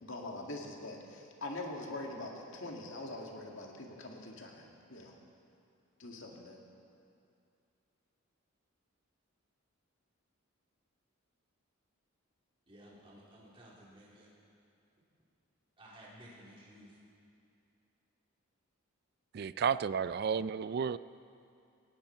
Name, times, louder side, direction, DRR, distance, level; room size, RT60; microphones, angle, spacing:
voice 1, 0.0-5.1 6.0-6.6, left 2 dB, 60° left, 0 dB, 2.1 m, -43 dB
voice 2, 12.7-14.3 15.8-16.9, equal, 25° right, -6 dB, 3.6 m, -55 dB
voice 3, 19.3-21.0, right 6 dB, 45° right, 16 dB, 0.3 m, -32 dB
18.0 x 17.5 x 4.5 m, 2.5 s
head